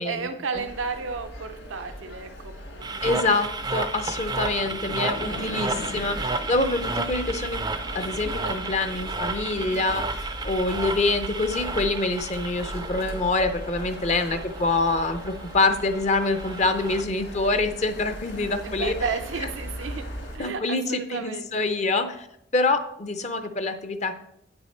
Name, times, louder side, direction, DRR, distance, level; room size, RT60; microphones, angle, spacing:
voice 1, 0.0-3.2 9.6-10.0 14.3-14.6 18.6-20.1 20.3-21.7, right 5 dB, 85° right, 7 dB, 0.6 m, -33 dB
sound 1, 0.5-20.4, equal, 65° left, 2.4 m, -39 dB
sound 2, 2.8-17.0, right 3 dB, 20° right, 0.4 m, -33 dB
voice 2, 3.0-7.6 7.9-18.9 20.4-22.3 22.5-24.2, left 3 dB, 35° left, 9 dB, 0.5 m, -26 dB
Laughter, 4.4-10.2, left 1 dB, 80° left, 1.4 m, -39 dB
9.2 x 6.2 x 4.3 m, 0.77 s
head